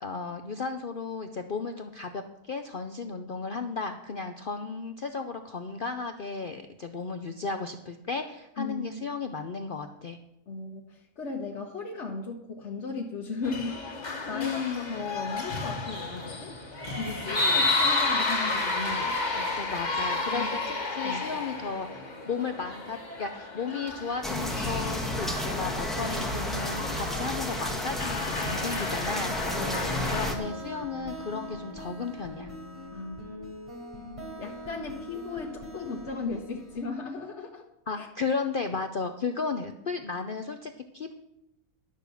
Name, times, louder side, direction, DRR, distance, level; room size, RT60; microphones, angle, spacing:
voice 1, 0.0-10.2 14.3-15.0 19.6-29.3 30.1-32.5 37.9-41.1, left 4 dB, 65° left, 7 dB, 0.5 m, -34 dB
voice 2, 8.6-9.1 10.5-16.6 17.0-19.5 20.3-20.6 21.0-21.3 29.5-30.1 32.9-33.2 34.4-37.6 38.0-38.1, left 4 dB, 50° left, -2 dB, 1.2 m, -37 dB
sound 1, 13.4-30.3, left 3 dB, 30° left, 1.4 m, -32 dB
sound 2, 24.2-30.4, left 1 dB, ahead, 1.2 m, -32 dB
sound 3, 29.4-36.9, equal, 20° right, 3.6 m, -42 dB
11.5 x 6.6 x 6.8 m, 0.88 s
omnidirectional pair, 1.7 m